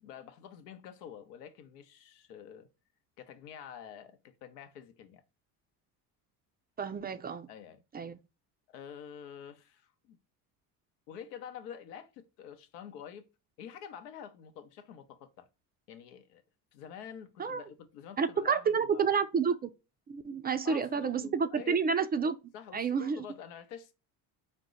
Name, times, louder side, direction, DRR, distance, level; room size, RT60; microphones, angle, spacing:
voice 1, 0.0-2.7 3.2-5.2 7.5-7.8 8.7-10.2 11.1-13.3 13.6-15.5 15.9-16.4 16.7-19.1 20.6-21.8 22.5-23.9, left 8 dB, 90° left, 0.7 m, -47 dB
voice 2, 6.8-7.5 7.9-8.2 17.4-17.6 18.2-19.7 20.1-22.4 22.7-23.2, right 6 dB, 25° right, 0.3 m, -29 dB
4.3 x 2.1 x 3.7 m
supercardioid pair, 75°, 46 cm